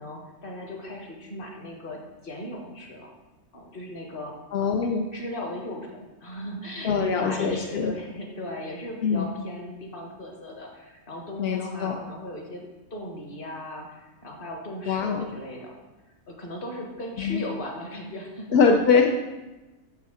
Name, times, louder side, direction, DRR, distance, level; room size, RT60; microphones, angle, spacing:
voice 1, 0.0-3.1 3.5-4.7 5.1-12.6 12.9-15.8 16.3-18.6, left 1 dB, 40° left, 1 dB, 1.4 m, -37 dB
voice 2, 4.5-5.1 6.8-7.9 9.0-9.3 11.4-11.9 14.9-15.3 17.2-17.4 18.5-19.1, left 5 dB, 60° left, 2 dB, 0.7 m, -22 dB
7.3 x 5.5 x 4.9 m, 1.1 s
omnidirectional pair, 1.5 m